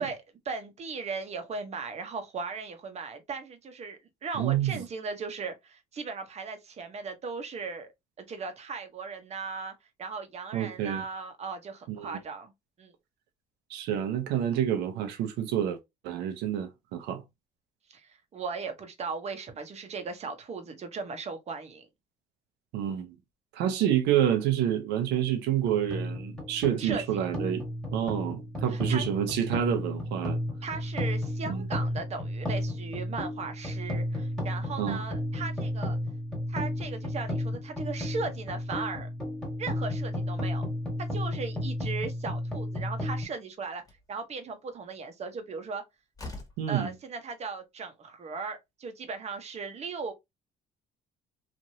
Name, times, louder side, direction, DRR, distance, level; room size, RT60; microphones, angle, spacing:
voice 1, 0.0-7.9 8.2-9.7 10.0-12.5 12.8-12.9 17.9-21.9 26.8-27.2 28.7-29.0 30.6-36.0 36.5-39.1 39.6-40.7 41.1-43.8 44.1-45.8 46.7-50.1, right 4 dB, 40° right, 0.8 m, -37 dB
voice 2, 4.3-4.8 10.5-11.0 11.9-12.2 13.7-15.8 16.0-17.2 22.7-23.1 23.5-27.6 27.9-30.4 31.4-31.7 34.8-35.0 46.6-46.9, right 10 dB, 90° right, 0.7 m, -28 dB
sound 1, 25.6-43.2, left 1 dB, ahead, 1.6 m, -33 dB
Slam, 43.8-44.1 45.6-45.7 46.1-46.7, left 2 dB, 20° left, 1.3 m, -43 dB
3.0 x 2.5 x 2.7 m
cardioid pair, 110°, 17 cm